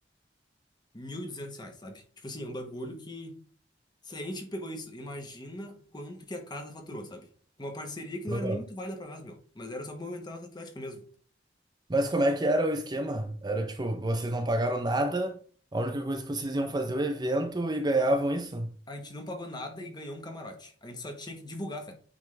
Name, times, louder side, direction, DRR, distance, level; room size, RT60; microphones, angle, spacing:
voice 1, 0.9-3.4 4.0-7.3 7.6-11.1 18.9-21.9, left 1 dB, 25° left, 1.2 m, -39 dB
voice 2, 11.9-15.4 15.7-18.7, right 1 dB, 25° right, 0.6 m, -28 dB
9.1 x 3.6 x 3.3 m
head